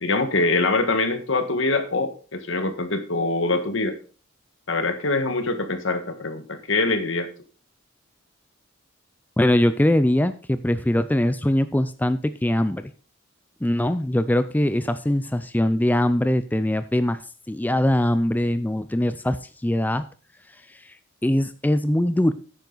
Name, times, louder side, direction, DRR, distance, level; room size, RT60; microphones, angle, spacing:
voice 1, 0.0-3.9 4.7-7.3, left 3 dB, 70° left, 8 dB, 1.6 m, -24 dB
voice 2, 9.4-12.9 13.6-17.2 17.5-20.0 20.7-21.0 21.2-22.3, left 1 dB, 10° left, 12 dB, 0.4 m, -22 dB
10.5 x 9.1 x 4.0 m, 0.37 s
head